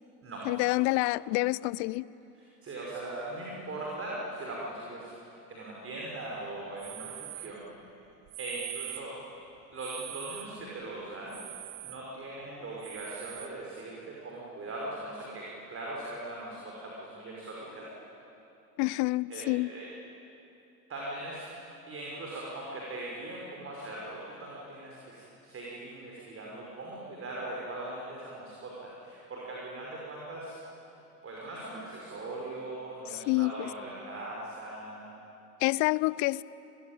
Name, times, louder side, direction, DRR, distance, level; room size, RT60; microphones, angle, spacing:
voice 1, 0.5-2.1 18.8-19.7 33.1-33.7 35.6-36.4, left 22 dB, 35° left, 21 dB, 0.5 m, -28 dB
voice 2, 2.3-5.1 5.5-7.6 8.4-9.2 9.7-11.4 11.8-14.0 14.2-17.9 19.3-19.9 20.9-21.5 21.9-30.5 31.2-35.1, right 2 dB, 30° right, -3 dB, 5.9 m, -40 dB
sound 1, 6.8-7.6 8.3-9.1 9.8-10.6 11.3-12.1 12.8-13.6, right 25 dB, 45° right, 0.8 m, -43 dB
29.5 x 21.0 x 9.0 m, 2.9 s
figure-of-eight pair, 75°, 48 cm